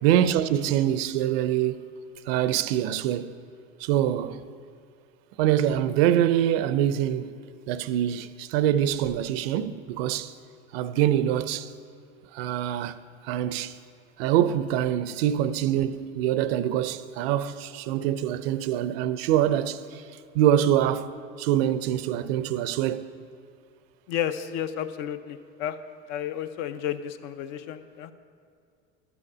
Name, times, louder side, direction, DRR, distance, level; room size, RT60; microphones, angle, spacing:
voice 1, 0.0-1.9 2.3-3.4 3.8-4.4 5.4-7.3 7.7-10.3 10.7-11.7 12.3-13.0 13.3-13.8 14.2-20.0 20.3-23.1, right 11 dB, 90° right, 0.5 m, -24 dB
voice 2, 24.1-25.8 26.1-28.1, left 10 dB, 70° left, 0.7 m, -32 dB
11.0 x 7.0 x 6.1 m
cardioid pair, 135°, 29 cm